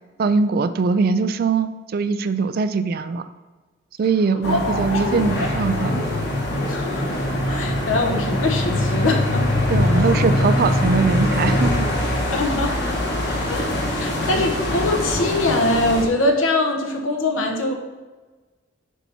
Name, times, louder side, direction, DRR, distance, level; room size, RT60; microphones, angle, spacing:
voice 1, 0.2-3.2 4.0-6.0 9.7-11.9 14.3-14.5, right 4 dB, 45° right, 11 dB, 0.3 m, -21 dB
voice 2, 4.4-5.0 6.7-9.5 10.0-10.1 12.3-12.8 13.5-17.7, left 2 dB, 85° left, 2 dB, 0.9 m, -23 dB
sound 1, 4.4-16.1, left 1 dB, 55° left, 1.1 m, -22 dB
7.0 x 2.8 x 5.8 m, 1.3 s
head